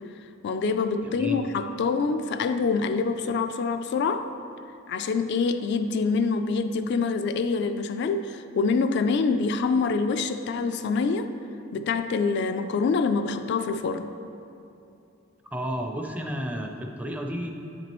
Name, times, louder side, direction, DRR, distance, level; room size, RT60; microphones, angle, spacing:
voice 1, 0.4-4.3 4.9-11.3 11.7-14.1, left 4 dB, 55° left, 8 dB, 0.3 m, -25 dB
voice 2, 1.0-1.4 15.5-17.5, equal, 10° right, 3 dB, 0.4 m, -32 dB
10.0 x 6.0 x 3.0 m, 2.7 s
head